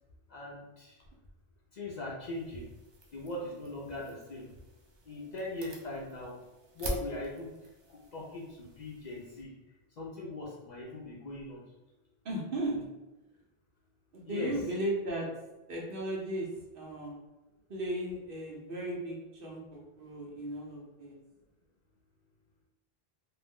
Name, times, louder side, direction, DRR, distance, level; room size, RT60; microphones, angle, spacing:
voice 1, 0.3-1.0 1.7-2.7 3.1-4.5 5.0-6.4 6.7-7.5 7.9-9.5 10.0-11.6 12.7-12.9 14.2-14.6, left 1 dB, 55° left, -4 dB, 0.6 m, -40 dB
sound 1, 2.2-9.4, equal, 45° right, 0.3 m, -46 dB
voice 2, 12.2-12.8 14.1-15.3 15.7-16.5 16.7-17.1 17.7-21.2, right 1 dB, 65° right, -2 dB, 0.9 m, -36 dB
2.5 x 2.0 x 3.5 m, 1.0 s
omnidirectional pair, 1.0 m